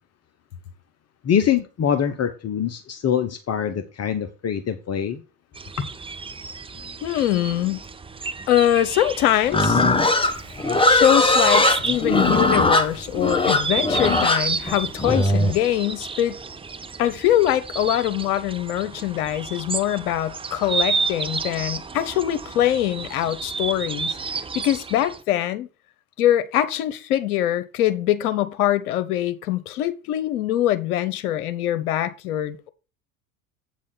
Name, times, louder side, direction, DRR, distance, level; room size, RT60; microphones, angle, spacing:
voice 1, 1.2-5.2 5.8-5.9, left 8 dB, 35° left, 1.0 m, -24 dB
sound 1, 5.5-25.2, right 5 dB, 10° right, 0.6 m, -32 dB
voice 2, 6.8-7.8 8.5-9.8 10.8-16.4 17.0-24.2 24.5-25.7 26.2-32.7, left 12 dB, 75° left, 1.1 m, -23 dB
Livestock farm animals working animals, 9.5-15.5, left 2 dB, 10° left, 1.3 m, -19 dB
8.4 x 6.3 x 4.0 m
hypercardioid pair, 80°, 45 cm